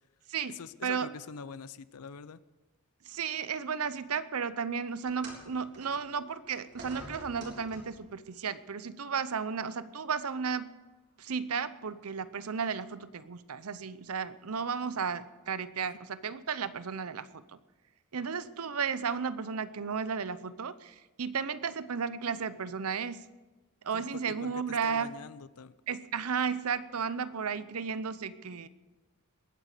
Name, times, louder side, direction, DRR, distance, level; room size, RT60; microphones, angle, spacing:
voice 1, 0.5-2.4 23.9-25.8, left 5 dB, 85° left, 16 dB, 0.5 m, -45 dB
voice 2, 3.1-10.7 11.2-17.4 18.1-23.3 23.8-25.1 25.9-28.7, right 6 dB, 75° right, 15 dB, 0.7 m, -34 dB
sound 1, 5.1-8.1 9.1-9.3 10.1-10.2, right 1 dB, 55° right, 3.7 m, -48 dB
20.5 x 9.0 x 6.7 m, 1.2 s
head